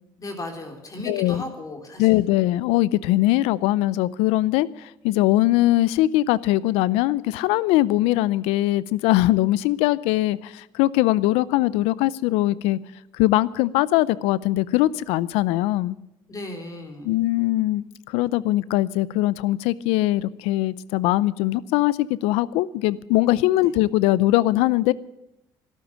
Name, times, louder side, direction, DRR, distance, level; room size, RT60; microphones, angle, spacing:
voice 1, 0.2-2.2 16.3-17.2, left 2 dB, 35° left, 4 dB, 3.5 m, -36 dB
voice 2, 1.1-1.4 2.0-12.8 13.1-16.0 17.0-24.9, left 16 dB, 80° left, 20 dB, 0.5 m, -21 dB
13.0 x 12.5 x 8.5 m, 0.90 s
supercardioid pair, 80°, 10 cm